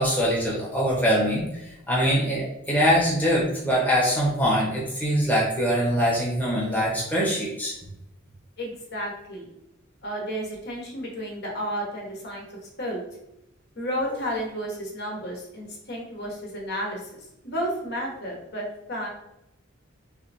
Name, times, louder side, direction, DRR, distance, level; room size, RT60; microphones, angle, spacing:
voice 1, 0.0-7.7, equal, 10° left, -5 dB, 1.0 m, -23 dB
voice 2, 8.6-9.5 10.0-12.4 12.8-13.0 13.8-19.1, equal, 55° left, -2 dB, 1.3 m, -32 dB
3.4 x 3.4 x 4.3 m, 0.86 s
head